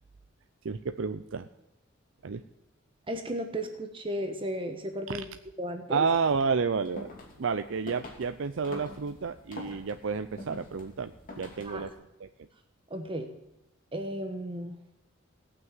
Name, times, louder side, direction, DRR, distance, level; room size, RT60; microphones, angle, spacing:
voice 1, 0.6-1.5 2.2-2.4 5.1-5.2 5.9-7.1 7.4-11.9 12.2-12.3, right 5 dB, 65° right, 9 dB, 0.5 m, -30 dB
voice 2, 3.1-5.2 5.6-6.0 11.6-11.9 12.9-13.3 13.9-14.8, equal, 25° right, 6 dB, 1.1 m, -34 dB
sound 1, 6.7-11.9, left 1 dB, 40° left, 2.8 m, -46 dB
17.5 x 6.2 x 9.1 m, 0.90 s
head